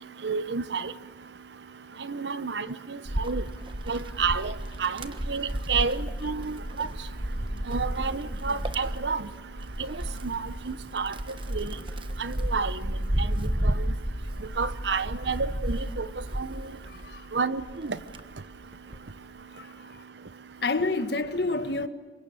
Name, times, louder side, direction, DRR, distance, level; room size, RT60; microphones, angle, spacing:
voice 1, 0.2-0.9 2.1-2.7 3.2-3.4 3.9-4.5 4.8-5.0 5.3-6.9 7.7-9.2 10.2-10.4 10.7-11.1 11.5-11.7 12.2-12.7 13.6-13.7 14.6-16.0 16.4-16.5 17.3-18.0, right 5 dB, 80° right, 1.0 m, -29 dB
Wind, 3.0-17.2 17.6-19.1, equal, 30° right, 1.2 m, -32 dB
voice 2, 6.0-6.3 7.5-7.7 8.0-8.2 11.7-11.9 13.5-13.7 16.3-16.4 16.9-17.3 19.5-20.0 20.6-21.9, left 3 dB, 70° left, 1.6 m, -31 dB
27.5 x 24.0 x 9.0 m
head